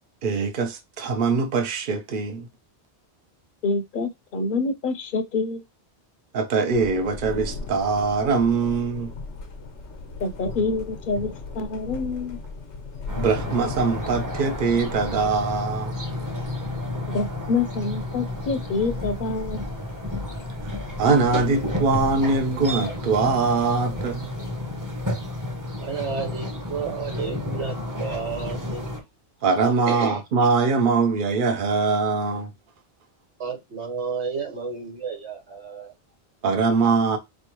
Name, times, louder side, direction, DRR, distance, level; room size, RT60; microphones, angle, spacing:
voice 1, 0.2-2.5 6.3-9.1 13.2-15.9 21.0-24.3 29.4-32.5 36.4-37.2, right 4 dB, 50° right, 0.9 m, -22 dB
voice 2, 3.6-5.6 10.2-12.4 17.1-19.7, left 3 dB, 55° left, 0.8 m, -27 dB
Thunder, 6.7-23.7, left 4 dB, 90° left, 1.2 m, -39 dB
sound 1, 13.1-29.0, left 1 dB, 20° right, 0.8 m, -31 dB
voice 3, 25.8-29.0 29.9-30.2 33.4-35.9, right 5 dB, 85° right, 1.5 m, -31 dB
4.4 x 3.3 x 3.0 m
omnidirectional pair, 1.1 m